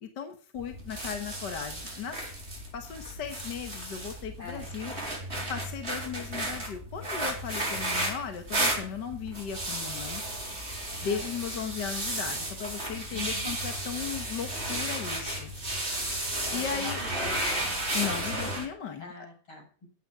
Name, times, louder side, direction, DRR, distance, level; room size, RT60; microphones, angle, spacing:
voice 1, 0.0-2.2 2.7-4.9 5.5-10.2 11.0-15.5 16.5-17.0 17.9-19.1, left 7 dB, 55° left, 6 dB, 1.9 m, -36 dB
sound 1, 0.6-18.7, right 1 dB, 30° right, 4.3 m, -33 dB
voice 2, 4.4-4.7 11.0-11.3 13.1-13.5 16.5-17.7 19.0-19.9, left 3 dB, 70° left, 1 dB, 7.6 m, -44 dB
15.5 x 9.2 x 5.0 m, 0.40 s
omnidirectional pair, 2.4 m